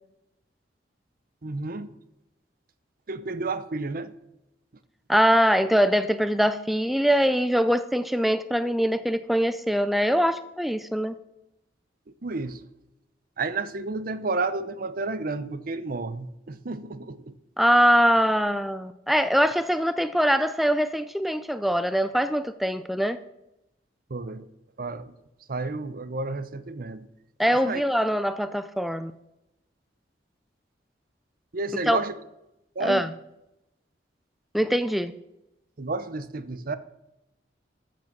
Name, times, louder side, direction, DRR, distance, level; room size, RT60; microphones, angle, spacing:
voice 1, 1.4-1.9 3.1-4.1 12.2-12.6 13.4-17.3 24.1-24.4 24.8-25.1 25.5-27.1 27.5-27.8 31.5-32.1 32.8-33.1 35.8-36.8, right 3 dB, 50° right, 14 dB, 0.7 m, -31 dB
voice 2, 5.1-11.1 17.6-23.2 27.4-29.1 31.9-32.0 32.8-33.1 34.5-35.1, equal, ahead, 12 dB, 0.3 m, -23 dB
13.5 x 6.2 x 5.9 m, 0.90 s
head